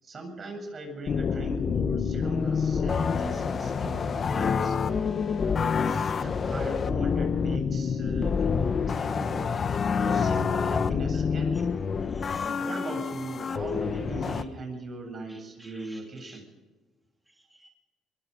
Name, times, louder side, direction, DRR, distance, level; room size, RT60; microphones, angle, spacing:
voice 1, 0.0-4.8 5.5-9.6 9.9-11.7 12.6-16.4, right 2 dB, 45° right, 4 dB, 7.8 m, -39 dB
sound 1, 1.1-14.4, left 6 dB, 45° left, 1.2 m, -27 dB
voice 2, 3.6-4.0 10.1-10.2 10.7-10.8 11.1-11.6 12.0-12.9 15.3-16.4 17.3-17.7, right 1 dB, 10° right, 1 dB, 3.1 m, -50 dB
23.5 x 21.5 x 5.2 m, 1.3 s
supercardioid pair, 65°, 0 cm